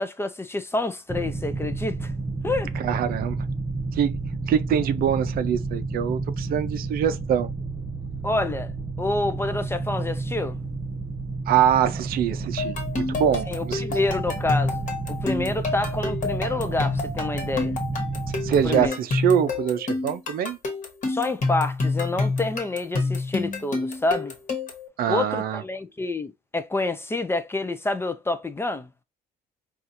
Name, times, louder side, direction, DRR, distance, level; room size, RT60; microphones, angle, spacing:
voice 1, 0.0-2.1 2.4-2.7 8.2-8.7 9.0-10.6 13.5-17.7 18.6-19.0 21.1-24.3 25.1-28.9, left 2 dB, 15° left, 0.4 m, -28 dB
sound 1, 1.1-18.9, right 3 dB, 25° right, 0.6 m, -31 dB
voice 2, 2.8-3.5 3.9-4.2 4.5-7.5 11.5-13.8 18.4-20.6 25.0-25.6, right 9 dB, 60° right, 0.5 m, -24 dB
sound 2, 12.6-24.9, left 3 dB, 45° left, 1.3 m, -28 dB
4.1 x 2.4 x 2.5 m
cardioid pair, 110°, 17 cm